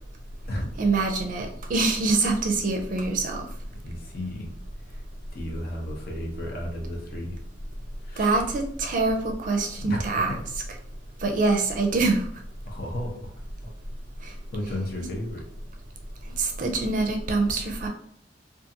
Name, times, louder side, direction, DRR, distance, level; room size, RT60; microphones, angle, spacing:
voice 1, 0.8-3.4 8.2-10.3 11.2-12.3 14.2-14.3 16.4-17.9, right 3 dB, 45° right, 3 dB, 0.4 m, -24 dB
voice 2, 3.8-4.5 4.9-5.0 5.3-7.4 8.0-8.3 9.8-10.0 10.3-10.4 12.6-13.3 13.6-13.7 14.5-15.4, left 1 dB, 55° left, -1 dB, 0.7 m, -33 dB
2.5 x 2.4 x 2.7 m, 0.62 s
head